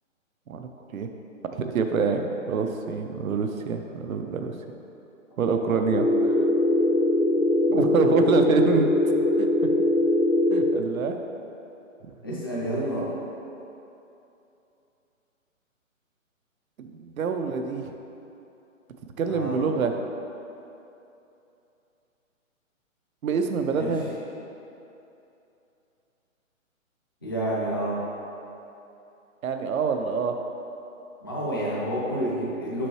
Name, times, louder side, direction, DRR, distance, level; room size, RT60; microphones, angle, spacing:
voice 1, 0.5-1.1 1.6-4.5 5.4-6.3 7.7-8.9 9.4-9.5 10.5-11.2 16.8-17.9 19.2-19.9 23.2-24.1 29.4-30.3, right 5 dB, 85° right, 5 dB, 0.6 m, -26 dB
sound 1, 5.8-10.8, left 2 dB, 80° left, 0.8 m, -22 dB
voice 2, 7.7-8.4 12.2-13.1 19.3-19.6 23.7-23.9 27.2-28.0 31.2-32.9, right 1 dB, 20° left, -7 dB, 0.4 m, -29 dB
6.0 x 5.4 x 3.1 m, 2.9 s
hypercardioid pair, 155°, 41 cm